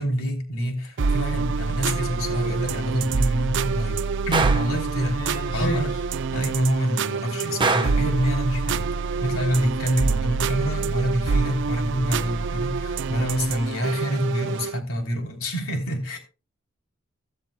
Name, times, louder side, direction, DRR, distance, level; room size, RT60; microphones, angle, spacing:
voice 1, 0.0-4.0 4.3-5.2 5.5-5.9 6.3-16.2, equal, 75° left, 3.3 m, -26 dB
sound 1, 1.0-14.8, right 5 dB, 60° right, 0.5 m, -26 dB
Gunshot gunfire, 4.3-4.7 7.6-8.1, right 3 dB, 25° right, 1.0 m, -23 dB
voice 2, 5.1-6.0, equal, 50° left, 4.3 m, -30 dB
15.5 x 13.5 x 2.2 m
head